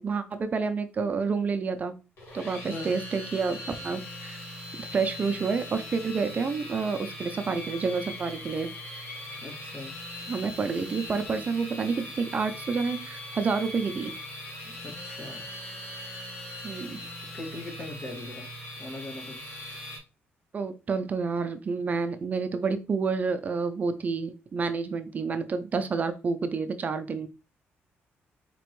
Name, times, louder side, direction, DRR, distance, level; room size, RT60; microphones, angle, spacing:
voice 1, 0.0-1.9 2.3-3.6 3.8-4.4 4.8-8.7 10.3-14.1 16.6-17.0 20.5-27.3, right 4 dB, 40° right, 0.5 m, -29 dB
sound 1, 2.2-20.0, left 1 dB, 75° left, 2.1 m, -40 dB
voice 2, 9.4-9.9 14.6-15.5 17.3-18.5 18.8-19.4, left 2 dB, 55° left, 2.1 m, -40 dB
4.2 x 2.9 x 3.1 m
cardioid pair, 100°, 4 cm